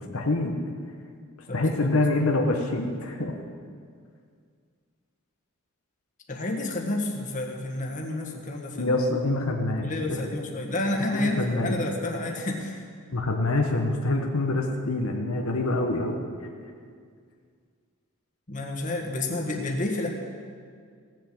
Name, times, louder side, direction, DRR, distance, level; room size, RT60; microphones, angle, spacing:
voice 1, 0.1-0.6 1.5-3.3 8.7-10.2 11.0-11.8 13.1-16.2, left 2 dB, 80° left, 2 dB, 1.2 m, -26 dB
voice 2, 1.5-2.3 2.7-2.9 6.3-9.0 9.8-12.8 18.5-20.1, left 2 dB, 35° left, 0 dB, 1.7 m, -30 dB
16.5 x 7.5 x 7.7 m, 2.1 s
head